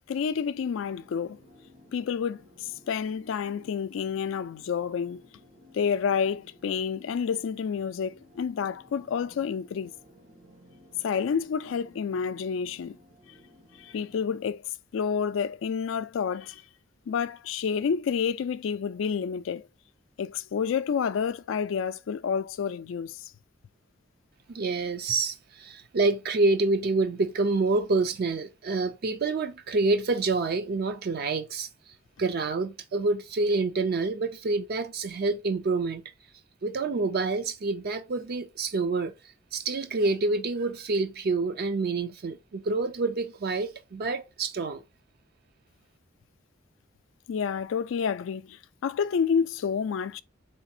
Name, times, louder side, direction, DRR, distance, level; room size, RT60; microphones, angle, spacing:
voice 1, 0.0-1.4 1.9-5.2 5.7-9.9 11.0-13.0 13.8-14.6 14.9-16.6 17.1-19.7 20.2-23.2 47.3-50.2, left 6 dB, 75° left, 0.3 m, -29 dB
sound 1, 0.8-14.5, left 1 dB, 70° right, 1.7 m, -56 dB
voice 2, 24.5-31.7 32.2-36.0 36.6-39.1 39.5-44.8, right 3 dB, 50° right, 0.4 m, -27 dB
4.0 x 3.3 x 2.7 m
head